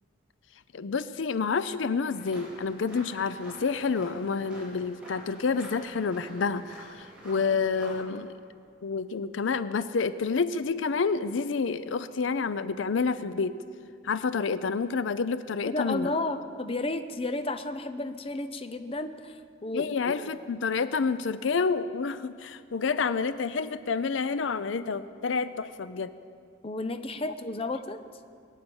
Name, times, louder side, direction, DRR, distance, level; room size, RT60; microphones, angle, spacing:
voice 1, 0.7-8.4 8.8-13.5 14.0-16.1 19.7-26.1, left 5 dB, 80° left, 14 dB, 0.5 m, -29 dB
sound 1, 2.1-8.0, equal, 5° right, 4.2 m, -48 dB
voice 2, 15.7-20.3 26.6-28.0, left 2 dB, 30° left, 9 dB, 0.6 m, -32 dB
22.0 x 9.2 x 7.1 m, 2.3 s
head